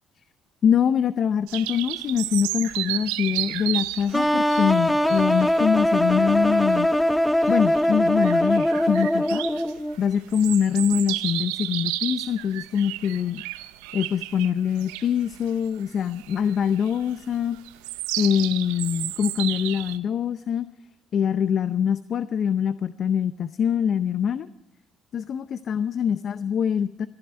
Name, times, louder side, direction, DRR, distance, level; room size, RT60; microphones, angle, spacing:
voice 1, 0.6-6.9 7.5-9.5 10.0-13.4 13.9-17.6 18.2-20.7 21.1-24.5 25.1-27.1, left 8 dB, 55° left, 14 dB, 0.6 m, -24 dB
sound 1, 1.5-20.0, right 17 dB, 85° right, 0.6 m, -33 dB
sound 2, 4.1-9.9, equal, 5° left, 0.7 m, -21 dB
21.0 x 11.0 x 4.4 m, 0.85 s
supercardioid pair, 70°, 0 cm